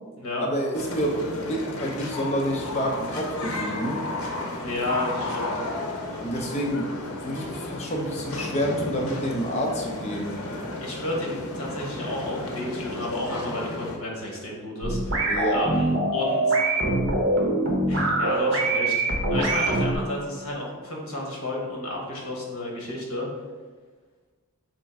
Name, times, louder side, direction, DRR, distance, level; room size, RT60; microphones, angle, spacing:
voice 1, 0.4-4.0 6.2-6.9 7.2-10.4 15.2-15.6, equal, 30° left, 1 dB, 0.5 m, -28 dB
sound 1, 0.7-14.0, left 2 dB, 90° left, 0.7 m, -33 dB
voice 2, 4.6-5.6 10.8-16.6 17.9-23.3, left 2 dB, 70° left, -2 dB, 1.1 m, -32 dB
sound 2, 14.8-19.9, right 2 dB, 55° right, 0.9 m, -23 dB
3.7 x 3.1 x 4.6 m, 1.4 s
head